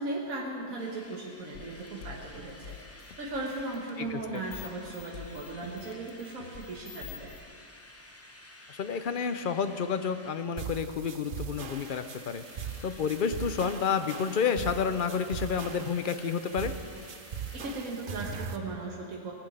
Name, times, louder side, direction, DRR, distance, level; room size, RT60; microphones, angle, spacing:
voice 1, 0.0-7.3 17.5-19.3, right 2 dB, 80° right, -1 dB, 1.7 m, -37 dB
Drill, 0.8-11.2 11.5-18.4, left 1 dB, 15° left, 0.8 m, -53 dB
sound 1, 1.4-7.4, left 8 dB, 75° left, 1.3 m, -47 dB
voice 2, 4.0-4.4 8.7-16.7, left 6 dB, 55° left, 9 dB, 0.6 m, -30 dB
sound 2, 10.6-18.6, right 6 dB, 50° right, 0.8 m, -40 dB
18.0 x 6.1 x 9.0 m, 2.3 s
omnidirectional pair, 1.4 m